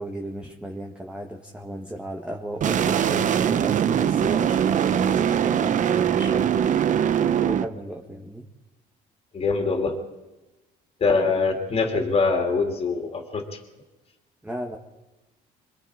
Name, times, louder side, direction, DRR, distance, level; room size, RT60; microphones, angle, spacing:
voice 1, 0.0-6.5 7.4-8.5 11.2-11.4 14.4-14.8, right 1 dB, 5° right, 1 dB, 1.6 m, -35 dB
sound 1, 2.6-7.6, right 8 dB, 50° right, 0.9 m, -22 dB
voice 2, 9.3-10.0 11.0-13.6, left 4 dB, 35° left, 2 dB, 2.8 m, -23 dB
26.5 x 21.0 x 5.0 m, 1.1 s
cardioid pair, 110°, 17 cm